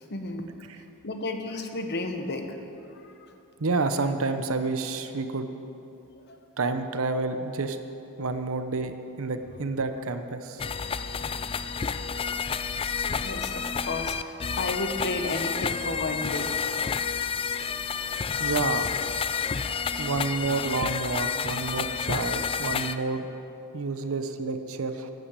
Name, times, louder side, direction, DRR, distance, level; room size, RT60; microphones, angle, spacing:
voice 1, 0.1-0.5 1.0-2.6 6.3-6.4 13.2-16.6, left 2 dB, 50° left, 5 dB, 1.1 m, -32 dB
voice 2, 3.6-5.5 6.6-7.8 8.2-10.6 18.4-18.9 20.0-23.3 23.7-25.1, right 3 dB, 65° right, 9 dB, 0.8 m, -29 dB
sound 1, 10.6-23.0, left 6 dB, 25° left, 0.3 m, -30 dB
11.5 x 9.3 x 8.1 m, 2.9 s
head